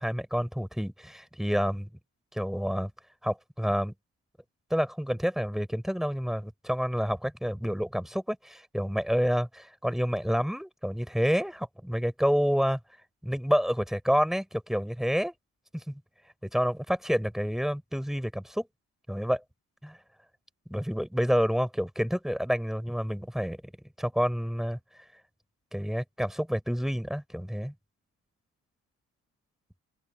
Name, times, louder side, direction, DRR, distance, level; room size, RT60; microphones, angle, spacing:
voice 1, 0.0-1.9 2.3-2.9 3.2-3.9 4.7-12.8 13.2-15.3 15.7-16.0 16.5-18.7 19.1-19.4 19.8-20.0 20.7-23.6 24.0-24.8 25.7-27.7, equal, ahead, 7.0 m, -28 dB
open air
cardioid pair, 90°, 30 cm